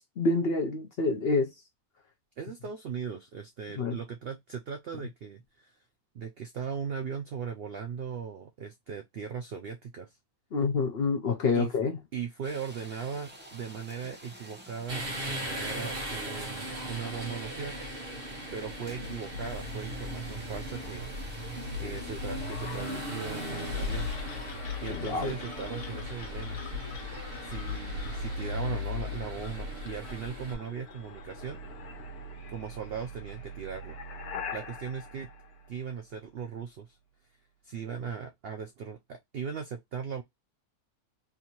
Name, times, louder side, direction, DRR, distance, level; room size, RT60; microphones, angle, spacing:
voice 1, 0.0-1.5 3.8-4.0 10.5-12.0 21.8-22.2 24.9-25.3, left 3 dB, 55° left, 0.7 m, -28 dB
voice 2, 2.4-5.7 6.1-10.2 11.5-17.8 18.5-21.0 21.8-24.1 24.8-26.6 27.4-31.6 32.5-34.0 34.5-35.3 35.7-37.0 37.6-40.2, right 6 dB, 75° right, 0.5 m, -38 dB
sound 1, 12.4-24.2, equal, 10° right, 0.6 m, -50 dB
sound 2, 14.9-30.6, left 1 dB, 40° right, 1.1 m, -37 dB
sound 3, 22.4-36.3, left 3 dB, 80° left, 1.3 m, -45 dB
3.5 x 2.6 x 2.8 m
omnidirectional pair, 1.6 m